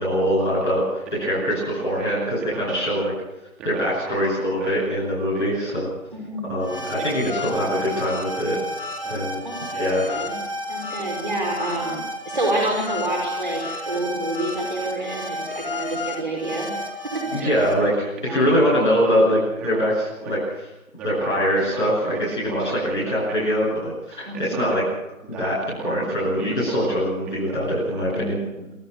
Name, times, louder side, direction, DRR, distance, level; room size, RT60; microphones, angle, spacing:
voice 1, 0.0-3.1 3.6-5.9 6.4-8.5 9.0-9.3 9.7-10.1 17.3-20.6 21.0-24.8 25.3-28.3, equal, ahead, -13 dB, 3.8 m, -23 dB
voice 2, 6.1-6.5 9.4-9.7 10.1-10.3 10.7-16.7 17.0-17.5 18.2-18.5 24.2-24.6 28.1-28.7, right 1 dB, 35° right, 0 dB, 5.4 m, -28 dB
sound 1, 6.6-17.7, left 1 dB, 40° left, 5.2 m, -31 dB
29.0 x 26.0 x 7.2 m, 0.96 s
figure-of-eight pair, 175°, 42 cm